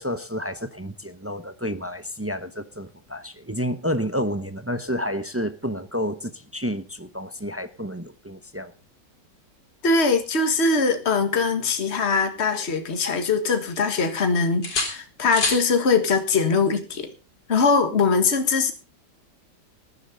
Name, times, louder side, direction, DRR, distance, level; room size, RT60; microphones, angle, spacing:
voice 1, 0.0-8.7, equal, 20° right, 0.3 m, -30 dB
voice 2, 9.8-17.1 17.5-18.7, left 4 dB, 40° left, 2.0 m, -22 dB
sound 1, 11.5-13.0 13.4-14.2 14.6-15.7 17.6-17.8, left 3 dB, 80° left, 4.0 m, -31 dB
18.5 x 11.0 x 3.9 m
omnidirectional pair, 1.9 m